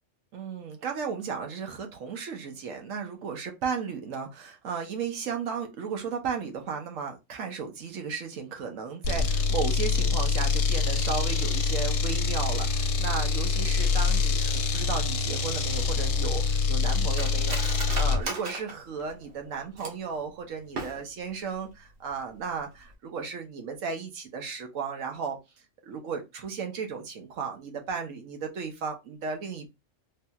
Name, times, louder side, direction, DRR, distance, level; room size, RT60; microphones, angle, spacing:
voice 1, 0.3-25.4 25.8-29.7, right 6 dB, 90° right, 1.2 m, -35 dB
sound 1, 9.0-18.2, left 4 dB, 70° left, 0.8 m, -25 dB
Cutlery silverware, 15.7-20.2 20.6-21.3 21.6-21.7 22.1-22.4 22.8-22.9, right 3 dB, 60° right, 1.0 m, -38 dB
3.2 x 2.7 x 2.3 m
omnidirectional pair, 1.3 m